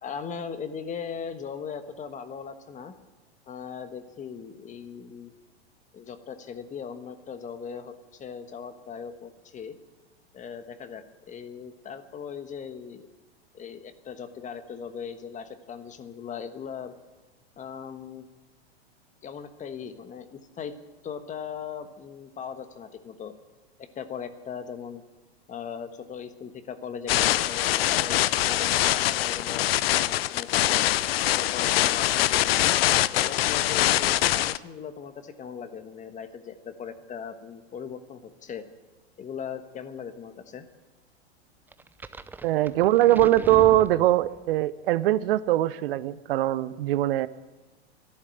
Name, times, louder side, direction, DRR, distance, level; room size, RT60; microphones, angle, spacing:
voice 1, 0.0-2.9 3.5-5.3 5.9-9.7 10.3-13.1 13.5-16.9 17.6-18.3 19.2-20.7 21.0-23.3 23.8-25.0 25.5-29.7 30.0-30.9 31.3-32.5 33.1-38.6 39.2-40.7, left 7 dB, 25° left, 10 dB, 1.3 m, -39 dB
sound 1, 27.1-34.6, left 14 dB, 65° left, 0.6 m, -23 dB
sound 2, 41.7-44.6, right 3 dB, 5° right, 0.5 m, -40 dB
voice 2, 42.4-47.3, right 14 dB, 60° right, 16 dB, 0.8 m, -22 dB
13.0 x 11.5 x 8.9 m, 1.2 s
hypercardioid pair, 105°, 32 cm